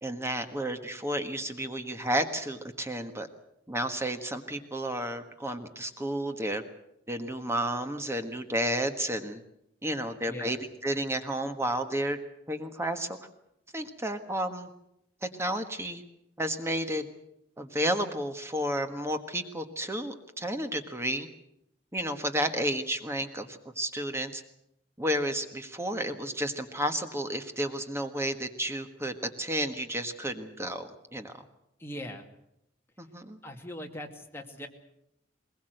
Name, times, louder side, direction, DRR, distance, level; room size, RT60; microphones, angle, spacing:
voice 1, 0.0-3.3 3.7-6.6 7.1-9.4 9.8-12.2 12.5-13.2 13.7-14.7 15.2-16.0 16.4-17.1 17.6-21.3 21.9-24.4 25.0-31.5 33.0-33.4, right 1 dB, 15° right, 7 dB, 1.5 m, -32 dB
voice 2, 10.3-10.6 31.8-32.2 33.4-34.7, left 1 dB, 15° left, 2 dB, 2.3 m, -40 dB
21.0 x 21.0 x 7.9 m, 0.79 s
head